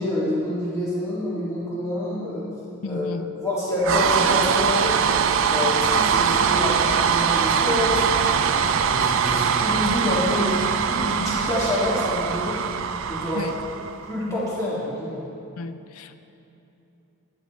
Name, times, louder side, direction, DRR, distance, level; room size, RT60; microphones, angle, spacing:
voice 1, 0.0-2.5 2.8-5.2 5.5-8.2 8.7-10.6 10.9-12.6 13.1-13.5 14.1-15.2, left 1 dB, 15° left, -8 dB, 2.1 m, -27 dB
voice 2, 2.8-3.3 13.3-13.5 15.6-16.2, left 3 dB, 80° left, 10 dB, 0.4 m, -33 dB
sound 1, 3.8-14.1, right 6 dB, 65° right, 0.4 m, -22 dB
12.5 x 10.5 x 3.1 m, 2.8 s
head